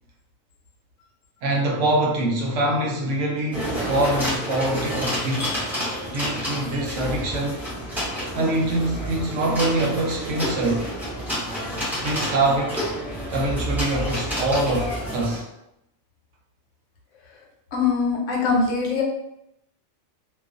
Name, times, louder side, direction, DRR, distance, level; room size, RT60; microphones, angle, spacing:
voice 1, 1.4-5.6 6.1-7.7 8.3-10.9 12.0-12.9 13.3-15.5, right 2 dB, 80° right, -1 dB, 0.9 m, -24 dB
sound 1, 3.5-15.4, equal, ahead, 0.6 m, -29 dB
voice 2, 17.7-19.0, left 4 dB, 80° left, 0 dB, 1.0 m, -22 dB
2.3 x 2.3 x 2.4 m, 0.82 s
omnidirectional pair, 1.3 m